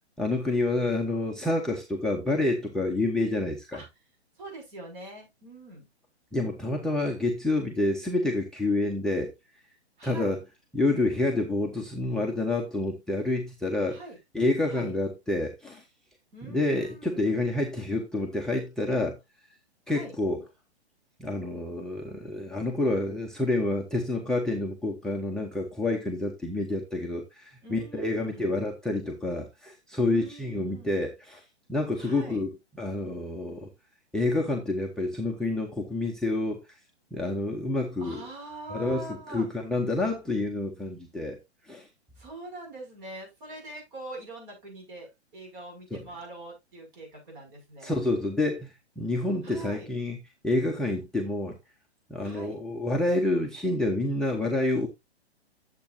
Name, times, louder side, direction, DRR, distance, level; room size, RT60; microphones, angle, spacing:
voice 1, 0.2-3.8 6.3-9.3 10.0-10.4 10.7-14.0 14.3-15.8 16.5-19.2 19.9-20.4 21.2-31.4 31.7-32.5 32.8-33.7 34.1-36.6 37.1-38.2 38.7-41.4 41.6-41.9 45.9-46.0 47.8-50.2 50.4-51.6 52.1-54.9, left 2 dB, ahead, 0.7 m, -28 dB
voice 2, 4.4-5.9 10.0-10.4 13.9-14.2 14.7-14.9 16.3-17.4 19.9-20.1 27.6-28.5 30.0-30.9 32.0-32.4 38.0-39.5 42.2-48.0 49.4-49.9 52.2-52.6, right 2 dB, 45° right, 6.5 m, -43 dB
10.5 x 7.5 x 2.7 m
figure-of-eight pair, 125°, 33 cm